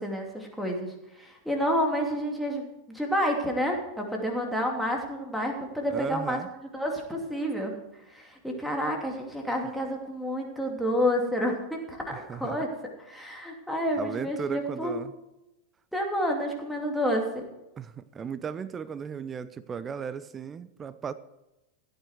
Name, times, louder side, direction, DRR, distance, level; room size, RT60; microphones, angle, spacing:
voice 1, 0.0-6.4 6.7-12.7 13.0-15.0 15.9-17.4, equal, ahead, 0 dB, 2.8 m, -29 dB
voice 2, 5.9-6.5 12.1-12.6 14.0-15.1 17.8-21.1, right 7 dB, 20° right, 16 dB, 0.5 m, -36 dB
15.5 x 9.2 x 4.5 m, 0.95 s
figure-of-eight pair, 90°, 0 cm